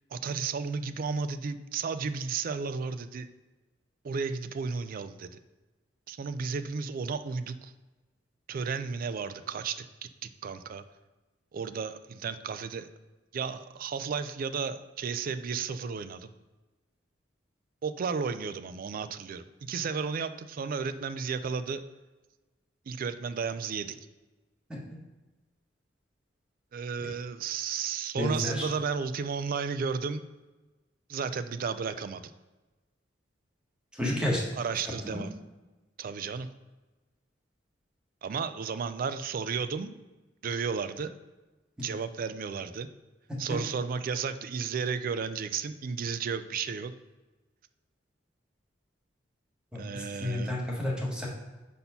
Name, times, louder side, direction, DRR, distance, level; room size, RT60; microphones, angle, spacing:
voice 1, 0.1-3.3 4.0-5.3 6.1-7.7 8.5-9.8 10.2-10.8 11.5-12.9 13.3-16.3 17.8-21.8 22.9-24.0 26.7-30.2 31.1-32.3 34.5-35.3 36.0-36.5 38.2-40.0 40.4-41.2 41.8-42.9 43.4-46.9 49.8-50.5, right 5 dB, 50° right, 12 dB, 0.4 m, -33 dB
voice 2, 28.2-28.7 33.9-34.4 35.1-35.2 41.8-41.9 49.7-51.3, left 1 dB, 5° right, -3 dB, 1.4 m, -31 dB
5.3 x 4.2 x 5.7 m, 1.2 s
head